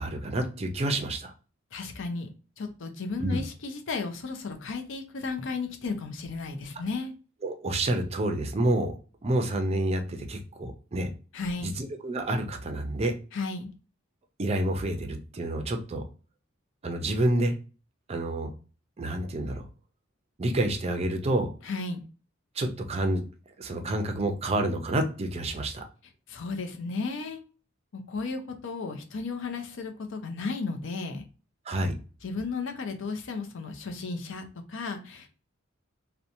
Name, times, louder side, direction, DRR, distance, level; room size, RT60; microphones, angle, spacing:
voice 1, 0.0-1.3 3.2-3.4 7.4-8.9 9.2-11.1 11.6-13.2 14.4-16.0 16.8-17.6 18.1-18.5 19.0-19.6 20.4-21.5 22.6-23.2 23.6-25.8 31.7-31.9, right 1 dB, 30° right, 5 dB, 0.4 m, -28 dB
voice 2, 1.7-2.3 2.6-7.1 11.3-11.7 13.3-13.6 21.6-22.0 26.3-27.4 28.1-31.2 32.2-35.3, left 4 dB, 65° left, 6 dB, 0.5 m, -34 dB
2.8 x 2.1 x 2.6 m, 0.36 s
head